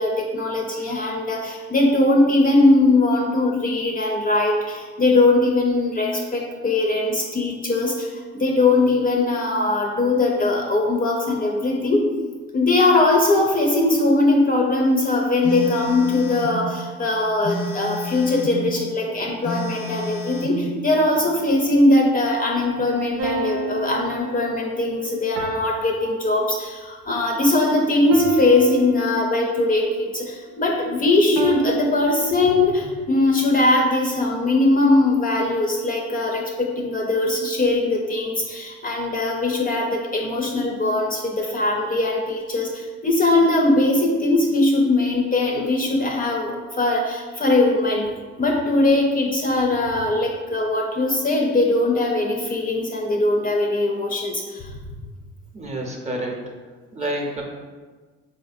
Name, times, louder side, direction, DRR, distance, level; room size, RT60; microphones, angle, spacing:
voice 1, 0.0-12.1 12.5-48.1 48.4-54.7, left 2 dB, 30° left, 0 dB, 0.5 m, -20 dB
Telephone, 15.4-16.6 17.4-18.6 19.4-20.6, left 2 dB, 85° left, 0.7 m, -30 dB
sound 1, 23.2-26.9 28.1-29.7 31.4-32.9, right 4 dB, 90° right, 0.5 m, -31 dB
voice 2, 55.5-56.4 56.9-57.4, right 1 dB, 20° right, -1 dB, 0.7 m, -28 dB
4.0 x 2.6 x 2.5 m, 1.4 s
supercardioid pair, 80°, 30 cm